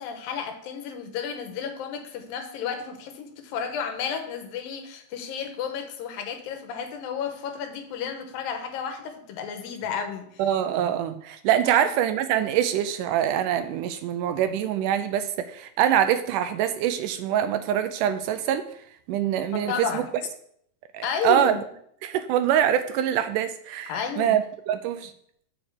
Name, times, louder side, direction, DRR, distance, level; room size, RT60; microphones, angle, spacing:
voice 1, 0.0-10.4 11.6-11.9 19.5-20.1 21.0-21.6 23.9-24.4, left 7 dB, 85° left, 6 dB, 2.9 m, -32 dB
voice 2, 10.4-18.7 19.1-20.0 20.9-21.6 22.0-25.1, right 10 dB, 80° right, 10 dB, 2.0 m, -24 dB
7.0 x 6.0 x 6.5 m, 0.68 s
omnidirectional pair, 4.0 m